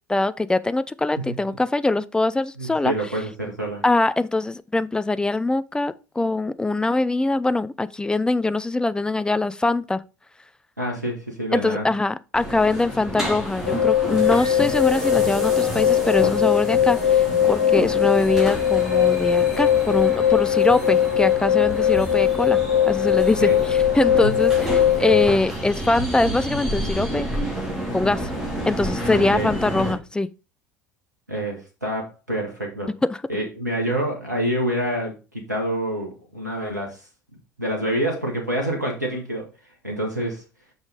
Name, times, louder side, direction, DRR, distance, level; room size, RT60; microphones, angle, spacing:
voice 1, 0.1-2.9 3.8-10.0 11.5-22.6 22.9-27.3 27.9-28.3 28.7-30.3 33.1-33.2, left 2 dB, 10° left, 0.5 m, -23 dB
voice 2, 1.2-1.6 2.6-3.8 10.8-11.9 23.4-23.6 24.2-24.3 29.1-29.5 31.3-32.9 33.3-37.0 37.6-39.5 39.8-40.4, right 1 dB, 90° right, 1.6 m, -27 dB
sound 1, 12.3-29.9, right 1 dB, 5° right, 3.3 m, -30 dB
sound 2, 13.7-25.4, left 10 dB, 75° left, 1.3 m, -20 dB
sound 3, 14.1-20.7, left 1 dB, 45° right, 3.1 m, -44 dB
6.2 x 5.4 x 4.9 m
figure-of-eight pair, 65°, 9 cm